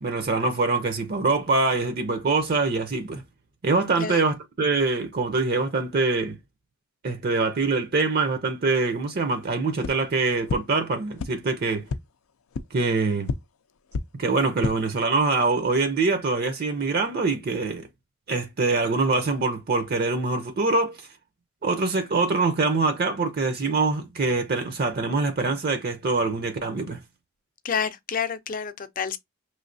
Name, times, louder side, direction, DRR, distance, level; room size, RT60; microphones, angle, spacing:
voice 1, 0.0-3.2 3.6-6.4 7.0-11.8 12.7-13.3 14.1-17.9 18.3-21.0 21.6-27.0, right 3 dB, 45° right, 0.6 m, -24 dB
sound 1, 9.8-9.9 10.5-10.6 11.2-11.3 11.9-12.0 12.5-12.6 13.2-13.3 13.9-14.0 14.5-14.7, left 4 dB, 90° left, 0.4 m, -27 dB
voice 2, 27.6-29.2, left 6 dB, 40° left, 0.5 m, -29 dB
5.4 x 3.2 x 2.6 m
head